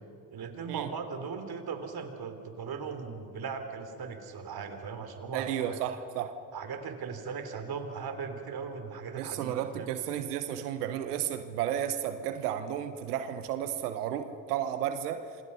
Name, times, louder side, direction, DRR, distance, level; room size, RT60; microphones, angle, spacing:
voice 1, 0.3-5.9 6.5-9.9, right 5 dB, 55° right, 8 dB, 3.3 m, -38 dB
voice 2, 5.3-6.3 9.2-15.2, right 10 dB, 85° right, 10 dB, 1.1 m, -33 dB
27.0 x 26.0 x 5.6 m, 2.7 s
hypercardioid pair, 50°, 45 cm